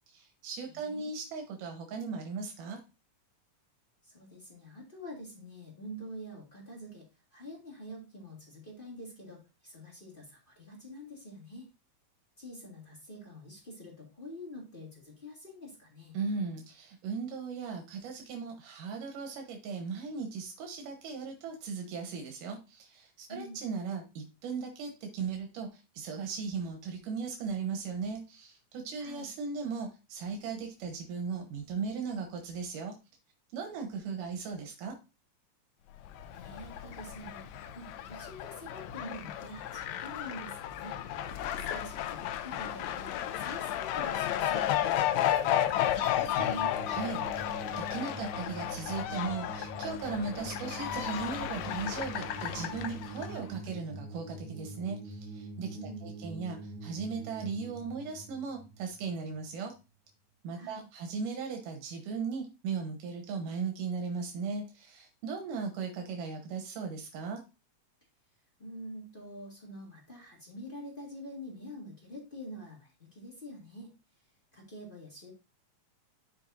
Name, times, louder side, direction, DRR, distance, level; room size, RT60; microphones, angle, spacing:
voice 1, 0.1-2.8 16.1-32.9 33.5-35.0 46.9-59.7 60.4-67.4, right 5 dB, 85° right, 3 dB, 2.6 m, -37 dB
voice 2, 0.7-1.1 4.0-7.1 7.3-11.7 12.4-16.2 23.3-23.6 29.0-29.3 36.3-40.9 41.5-46.8 55.7-56.0 60.5-60.8 68.6-73.9 74.5-75.3, equal, 20° left, -3 dB, 1.6 m, -46 dB
Fowl, 36.1-53.4, left 11 dB, 75° left, 1.8 m, -33 dB
sound 1, 46.4-59.5, right 2 dB, 55° right, 2.4 m, -44 dB
11.5 x 4.7 x 2.6 m, 0.28 s
omnidirectional pair, 3.6 m